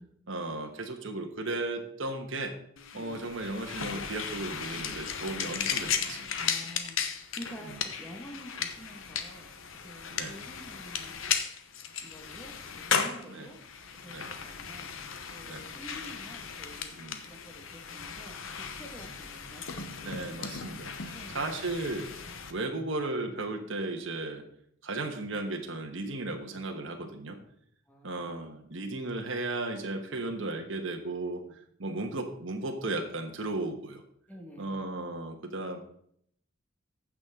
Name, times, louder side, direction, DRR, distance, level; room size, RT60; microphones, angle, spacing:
voice 1, 0.3-2.5 2.9-6.3 7.6-7.8 10.1-10.3 13.3-13.5 14.1-14.3 15.4-15.7 16.9-17.2 20.0-22.1 22.5-24.4 24.8-27.4 28.0-31.4 31.8-34.0 34.6-35.8, right 2 dB, 70° right, 3 dB, 1.3 m, -35 dB
sound 1, 2.8-22.5, left 6 dB, 85° left, 1.0 m, -36 dB
voice 2, 2.9-3.2 6.4-9.5 9.8-11.1 12.0-13.6 14.0-14.9 15.3-16.9 17.3-20.5 21.1-21.5 27.9-28.5 31.9-32.2 34.3-34.9, equal, 10° left, 0 dB, 1.8 m, -48 dB
15.0 x 6.2 x 3.7 m, 0.67 s
head